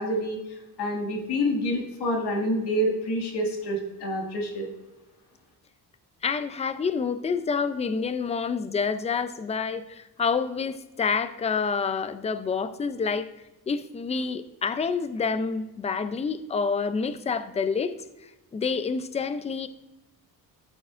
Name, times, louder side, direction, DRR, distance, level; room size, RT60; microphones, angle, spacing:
voice 1, 0.0-4.7, equal, 85° left, 1 dB, 2.1 m, -28 dB
voice 2, 6.2-13.3 13.7-17.9 18.5-19.7, left 5 dB, 15° left, 11 dB, 0.4 m, -28 dB
13.5 x 9.0 x 2.5 m, 1.0 s
cardioid pair, 145°, 39 cm